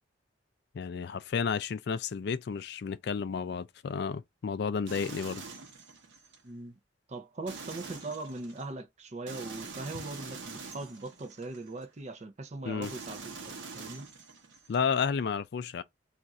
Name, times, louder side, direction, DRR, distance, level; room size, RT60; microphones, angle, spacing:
voice 1, 0.7-5.4 12.6-12.9 14.7-15.8, left 6 dB, 60° left, 0.3 m, -32 dB
sound 1, 4.9-6.4 7.5-8.7 9.3-11.8 12.8-14.8, right 4 dB, 85° right, 0.9 m, -45 dB
voice 2, 6.4-6.8 7.1-14.1, right 2 dB, 35° right, 0.5 m, -40 dB
2.4 x 2.4 x 4.1 m
head